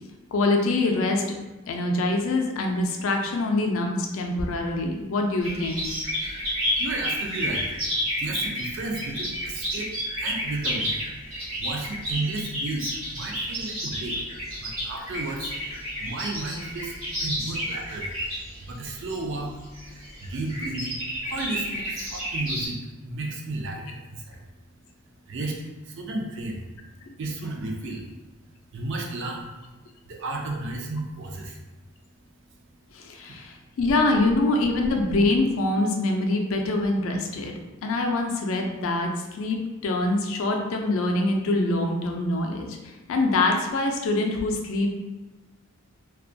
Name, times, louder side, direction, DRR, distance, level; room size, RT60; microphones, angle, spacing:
voice 1, 0.3-1.2 1.7-5.9 7.5-7.6 27.1-27.2 32.9-44.9, left 2 dB, 65° left, 2 dB, 0.4 m, -25 dB
sound 1, 5.4-22.7, equal, 75° right, 1.1 m, -31 dB
voice 2, 6.8-7.8 8.2-9.9 10.2-10.9 11.6-14.2 14.6-18.1 18.6-19.5 19.9-21.0 21.2-22.8 23.0-24.4 25.3-25.6 25.9-26.6 27.2-28.1 28.7-29.5 30.0-31.6 33.3-33.4, right 2 dB, 55° right, 0 dB, 0.4 m, -33 dB
2.3 x 2.1 x 2.6 m, 1.1 s
head